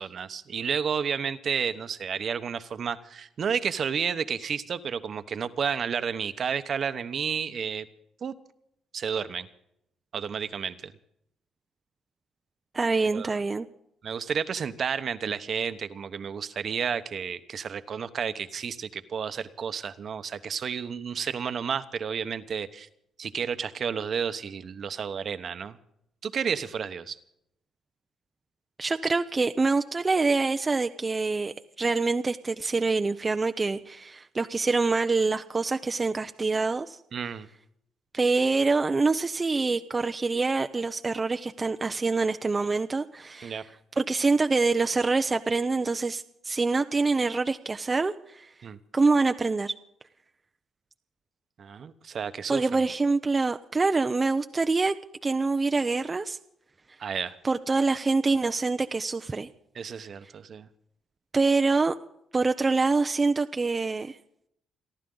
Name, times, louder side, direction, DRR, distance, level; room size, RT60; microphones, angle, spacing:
voice 1, 0.0-7.9 8.2-8.3 8.9-9.5 10.1-10.9 13.1-13.4 14.0-22.9 23.2-25.8 26.2-27.2 37.1-37.5 43.4-43.6 48.6-48.8 51.6-52.8 57.0-57.4 59.7-60.7, right 7 dB, 50° right, 11 dB, 1.0 m, -31 dB
voice 2, 12.7-13.7 28.8-37.0 38.1-43.6 44.0-48.5 48.9-49.7 52.5-54.9 55.2-56.4 57.4-59.5 61.3-61.9 62.3-64.2, right 3 dB, 25° right, 7 dB, 0.6 m, -25 dB
29.5 x 11.0 x 3.9 m, 0.77 s
cardioid pair, 90°, 0 cm